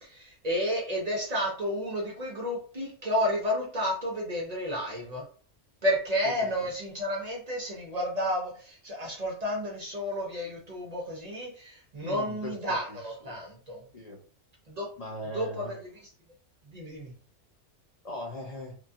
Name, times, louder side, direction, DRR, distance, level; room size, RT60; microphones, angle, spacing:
voice 1, 0.0-5.2 5.8-13.8 14.7-14.9 15.3-15.8 16.6-17.1, equal, 45° right, -2 dB, 0.6 m, -31 dB
voice 2, 12.0-12.6 12.9-13.0 13.2-13.4 13.9-14.2 15.0-15.7 18.0-18.8, left 1 dB, 75° left, 0 dB, 0.3 m, -39 dB
2.9 x 2.3 x 2.6 m, 0.43 s
omnidirectional pair, 1.3 m